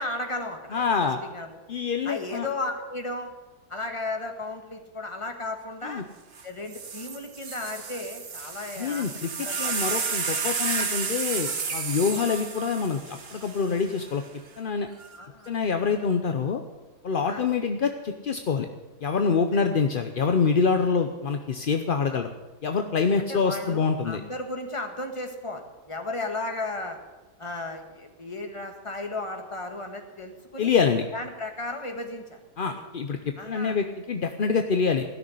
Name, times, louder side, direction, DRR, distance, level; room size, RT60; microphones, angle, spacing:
voice 1, 0.0-1.6 2.0-3.3 3.7-6.0 6.4-9.1 9.4-9.7 11.5-11.7 15.2-15.5 17.2-17.4 19.5-19.7 22.1-22.3 23.3-25.6 25.9-27.0 27.4-30.7 31.1-32.7 33.4-33.8, left 2 dB, 20° left, 4 dB, 1.6 m, -35 dB
voice 2, 0.7-1.2 1.7-2.5 5.8-6.0 8.8-14.2 14.6-14.9 15.5-16.6 17.0-18.7 19.0-22.3 22.6-24.2 30.6-31.0 32.6-33.2 33.5-35.0, left 5 dB, 45° left, 6 dB, 0.7 m, -26 dB
sound 1, 6.4-6.5 6.7-14.1 15.0-15.5, right 5 dB, 40° right, 1.2 m, -32 dB
16.5 x 6.5 x 10.0 m, 1.2 s
omnidirectional pair, 1.8 m